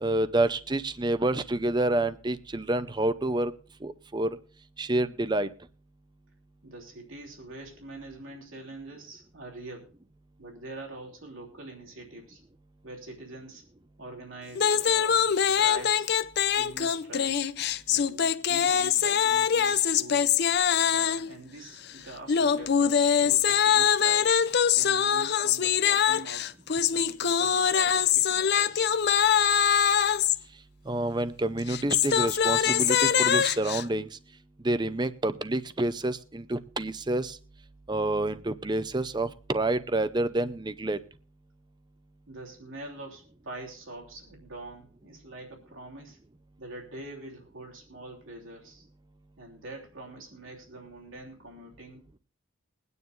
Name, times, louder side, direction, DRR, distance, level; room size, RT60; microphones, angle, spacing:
voice 1, 0.0-3.5 3.8-4.4 4.8-5.5 30.9-34.1 34.6-37.4 37.9-41.0, right 2 dB, 20° right, 12 dB, 0.6 m, -28 dB
voice 2, 6.6-9.9 10.4-12.4 12.8-13.6 14.0-16.1 16.6-17.4 17.9-20.4 20.9-24.3 24.8-26.5 26.9-28.9 42.3-46.2 46.6-48.9 49.4-52.2, right 2 dB, 80° right, 0 dB, 3.1 m, -44 dB
sound 1, 14.5-21.3 22.3-30.4 31.6-33.8, left 8 dB, 50° left, 0.5 m, -23 dB
22.0 x 9.5 x 2.6 m, 0.40 s
head